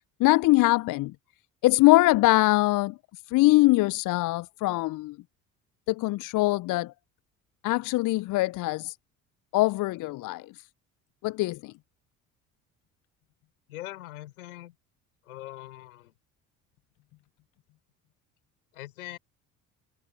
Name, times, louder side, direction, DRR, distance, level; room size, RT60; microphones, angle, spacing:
voice 1, 0.2-1.1 1.6-3.0 3.3-5.2 5.9-6.9 7.6-8.9 9.5-10.5 11.2-11.7, left 19 dB, 50° left, 0.5 m, -22 dB
voice 2, 13.7-14.8 15.2-16.1 18.7-19.2, left 16 dB, 80° left, 4.9 m, -42 dB
hypercardioid pair, 60°, 42 cm